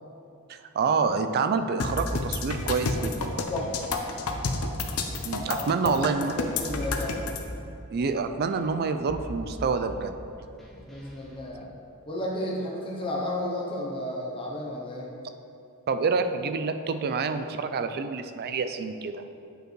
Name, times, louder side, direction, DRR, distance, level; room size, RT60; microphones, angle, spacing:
voice 1, 0.5-3.2 5.2-6.3 7.9-10.2 15.9-19.2, right 4 dB, 45° right, 9 dB, 0.4 m, -27 dB
sound 1, 1.8-7.4, left 4 dB, 80° left, 0.6 m, -30 dB
sound 2, 1.9-11.4, equal, ahead, 1.0 m, -40 dB
voice 2, 3.5-3.9 5.5-5.9 6.4-7.1 10.9-11.8 12.1-15.1, left 1 dB, 25° left, -4 dB, 0.7 m, -33 dB
8.8 x 5.1 x 3.1 m, 2.7 s
head